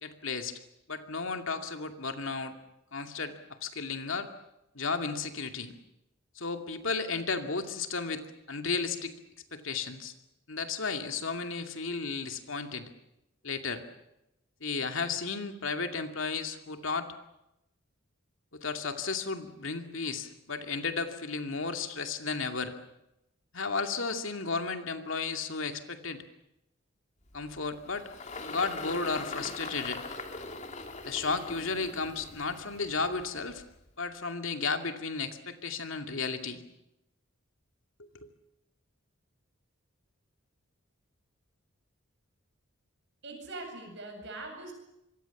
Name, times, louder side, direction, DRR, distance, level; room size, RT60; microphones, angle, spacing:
voice 1, 0.0-0.6 0.9-2.6 2.9-4.3 4.7-5.7 6.4-8.2 8.5-9.1 9.5-10.1 10.5-12.9 13.4-13.8 14.6-17.1 18.5-22.7 23.5-26.2 27.3-28.1 28.5-30.0 31.0-33.6 34.0-36.6 38.0-38.3, left 4 dB, 65° left, 6 dB, 2.5 m, -34 dB
Engine, 27.3-33.9, left 3 dB, 35° left, 2.5 m, -42 dB
voice 2, 43.2-44.7, right 2 dB, 55° right, 4 dB, 8.0 m, -42 dB
26.5 x 23.5 x 7.3 m, 0.88 s
head